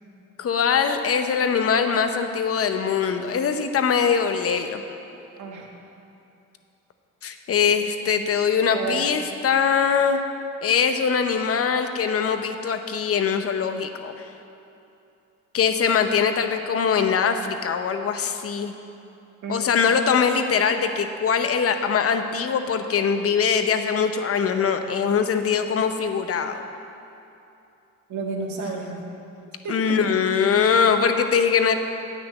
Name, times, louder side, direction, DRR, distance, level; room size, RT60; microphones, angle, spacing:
voice 1, 0.4-4.8 7.2-10.2 10.6-14.1 15.5-18.7 19.5-26.6 29.7-31.7, left 6 dB, 50° left, 7 dB, 0.8 m, -22 dB
voice 2, 5.4-5.7 8.7-9.1 19.4-19.6 28.1-29.0 29.6-30.4, right 4 dB, 75° right, -1 dB, 1.7 m, -31 dB
9.5 x 5.9 x 7.8 m, 2.7 s
cardioid pair, 90°, 30 cm